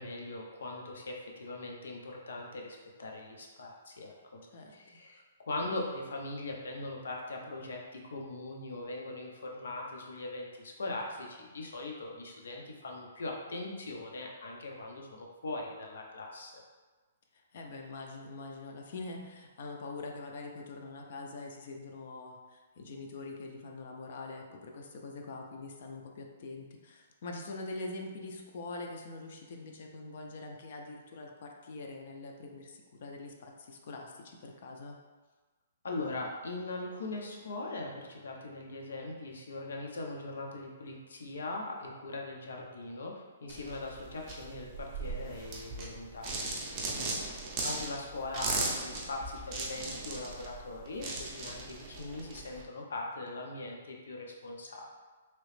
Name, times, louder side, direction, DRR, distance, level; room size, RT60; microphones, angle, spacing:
voice 1, 0.0-4.4 4.7-16.6 35.8-47.0 47.6-54.9, left 2 dB, 90° left, 0 dB, 0.7 m, -40 dB
voice 2, 17.5-35.0 47.0-47.1, left 3 dB, 45° left, 2 dB, 0.4 m, -44 dB
Marble Bathroom, 43.5-52.6, right 3 dB, 20° right, 0.5 m, -38 dB
3.0 x 2.9 x 3.2 m, 1.3 s
hypercardioid pair, 170°, 0 cm